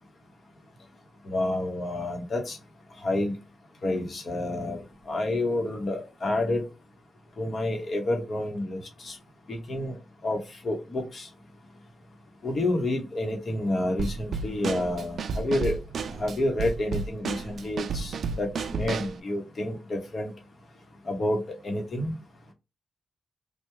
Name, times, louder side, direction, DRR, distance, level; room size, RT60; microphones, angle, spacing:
voice 1, 1.2-2.6 3.0-3.3 3.8-4.8 5.1-6.6 7.4-9.2 9.5-10.0 10.2-11.3 12.4-15.8 16.2-20.3 21.0-22.1, left 1 dB, 40° left, 2 dB, 0.9 m, -29 dB
Drum kit / Snare drum, 14.0-19.2, right 5 dB, 60° right, 0.3 m, -32 dB
3.4 x 2.2 x 3.0 m, 0.26 s
wide cardioid pair, 165°, 0 cm